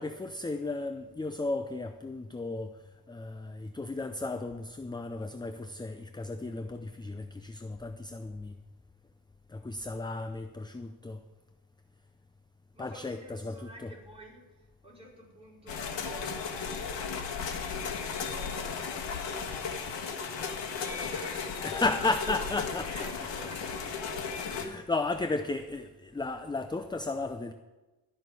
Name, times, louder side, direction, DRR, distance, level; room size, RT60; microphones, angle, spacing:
voice 1, 0.0-2.7 3.1-8.6 9.5-11.2 12.8-14.0 21.6-23.1 24.4-27.5, left 3 dB, 10° left, 0.5 m, -34 dB
voice 2, 12.7-14.5 14.8-16.4 17.4-21.8 22.6-24.5, equal, 15° right, 4.9 m, -50 dB
sound 1, 15.7-24.7, left 5 dB, 85° left, 1.7 m, -35 dB
12.5 x 6.4 x 9.4 m
cardioid pair, 115°, 42 cm